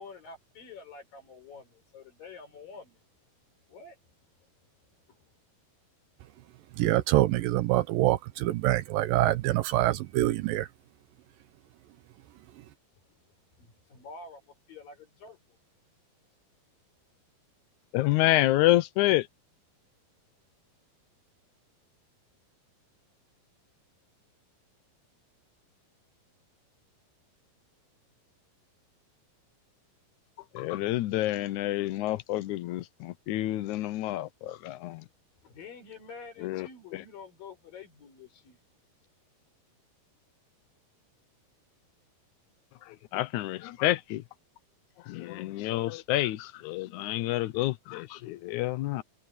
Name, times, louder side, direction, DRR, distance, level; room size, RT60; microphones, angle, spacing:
voice 1, 0.0-3.0 3.7-4.0 13.0-13.3 13.6-15.6 35.4-38.6, left 4 dB, 65° left, 6.6 m, -48 dB
voice 2, 6.8-10.7, right 16 dB, 75° right, 2.3 m, -25 dB
voice 3, 17.9-19.3 30.5-35.0 36.4-36.7 36.9-37.0 42.9-44.2 45.1-49.0, left 16 dB, 90° left, 1.7 m, -28 dB
omnidirectional pair, 4.4 m